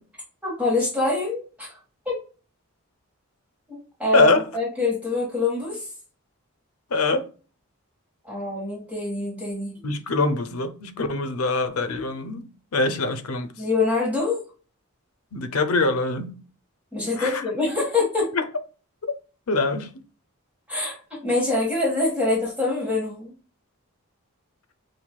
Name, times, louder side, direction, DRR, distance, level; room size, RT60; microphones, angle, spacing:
voice 1, 0.4-1.8 2.0-2.2 3.7-5.9 8.2-9.8 13.6-14.4 16.9-18.3 20.7-21.0 21.2-23.3, left 2 dB, 5° right, 1.5 m, -25 dB
voice 2, 4.1-4.5 6.9-7.3 9.8-12.5 12.7-13.5 15.3-16.3 17.2-17.4 18.3-18.4 19.5-19.9, left 3 dB, 85° left, 0.6 m, -23 dB
5.7 x 2.6 x 2.3 m
head